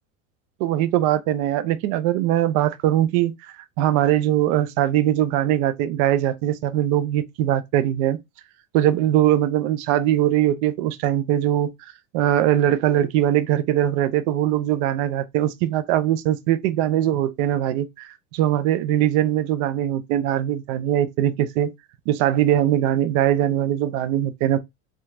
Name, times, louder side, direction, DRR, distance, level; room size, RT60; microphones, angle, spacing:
voice 1, 0.6-8.2 8.7-11.7 12.1-21.7 22.1-24.6, right 12 dB, 60° right, 0.5 m, -21 dB
2.7 x 2.4 x 2.5 m
hypercardioid pair, 100°, 38 cm